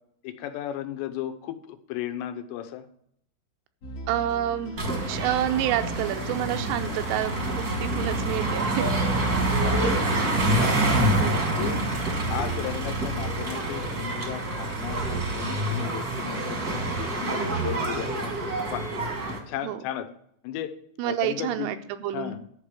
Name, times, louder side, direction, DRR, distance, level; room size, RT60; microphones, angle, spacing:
voice 1, 0.2-2.9 6.7-7.0 9.4-11.8 12.3-16.6 17.0-18.3 18.7-18.9 19.5-20.1 20.4-20.7 21.0-21.7 22.1-22.4, left 11 dB, 85° left, 8 dB, 3.1 m, -35 dB
sound 1, 3.8-12.7, left 2 dB, 70° left, 1.5 m, -39 dB
voice 2, 4.1-4.7 5.1-8.9 11.2-11.4 17.2-17.6 19.6-19.8 21.0-21.8 22.0-22.4, right 12 dB, 85° right, 9 dB, 2.8 m, -28 dB
sound 2, 4.8-19.4, right 2 dB, 45° right, 1.1 m, -27 dB
11.0 x 4.9 x 7.4 m, 0.69 s
omnidirectional pair, 4.9 m